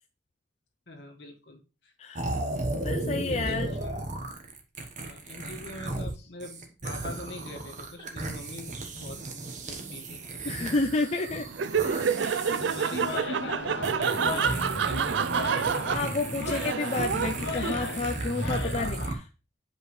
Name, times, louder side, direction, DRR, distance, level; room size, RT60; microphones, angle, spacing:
voice 1, 0.9-1.9 3.2-4.1 5.0-9.4 9.7-10.8 12.4-15.7, left 2 dB, 65° left, 2 dB, 1.8 m, -43 dB
sound 1, 2.2-6.1 6.4-13.2 13.8-19.2, right 2 dB, 45° right, 1.3 m, -35 dB
voice 2, 2.8-3.8 10.4-11.5 12.1-12.5 15.9-19.3, left 3 dB, 35° left, 5 dB, 0.5 m, -30 dB
Laughter, 11.5-18.1, right 6 dB, 75° right, 0.4 m, -28 dB
sound 2, 12.4-19.1, left 4 dB, 85° left, 0.8 m, -38 dB
8.8 x 5.4 x 3.2 m, 0.31 s
head